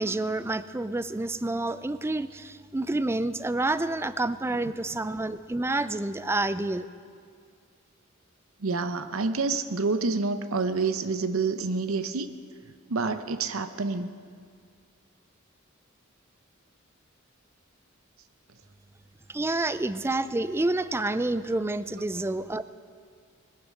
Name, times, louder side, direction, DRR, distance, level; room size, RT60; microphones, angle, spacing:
voice 1, 0.0-6.9 19.3-22.6, right 2 dB, 10° right, 14 dB, 0.4 m, -28 dB
voice 2, 8.6-12.3 12.9-14.1 22.0-22.1, right 4 dB, 85° right, 10 dB, 0.8 m, -28 dB
21.0 x 10.0 x 6.4 m, 2.1 s
head